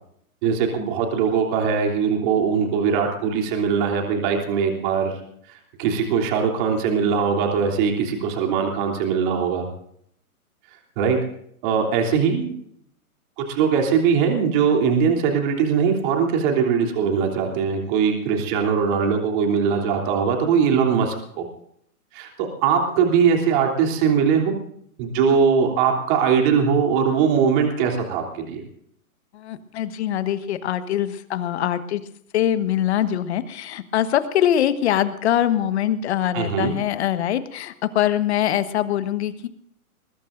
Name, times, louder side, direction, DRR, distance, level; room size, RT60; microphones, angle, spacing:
voice 1, 0.4-5.1 5.8-9.7 11.0-11.2 11.6-12.5 13.5-21.4 22.1-24.6 25.0-28.6 36.3-36.7, right 6 dB, 35° right, 2 dB, 3.3 m, -21 dB
voice 2, 29.3-32.0 32.3-39.5, left 11 dB, 45° left, 11 dB, 1.4 m, -23 dB
21.0 x 21.0 x 2.6 m, 0.68 s
hypercardioid pair, 150°, 44 cm